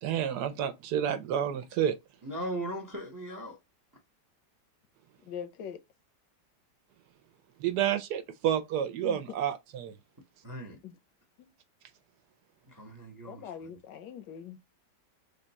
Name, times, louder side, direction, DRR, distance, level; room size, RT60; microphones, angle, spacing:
voice 1, 0.0-2.0 7.6-9.9, right 9 dB, 75° right, 1.1 m, -30 dB
voice 2, 2.2-3.6 10.4-10.8 12.7-13.8, right 1 dB, 30° right, 0.4 m, -38 dB
voice 3, 5.3-5.8 9.0-9.2 10.8-10.9 11.4-11.5 13.3-14.6, left 8 dB, 80° left, 1.3 m, -42 dB
3.6 x 2.2 x 3.9 m
omnidirectional pair, 1.9 m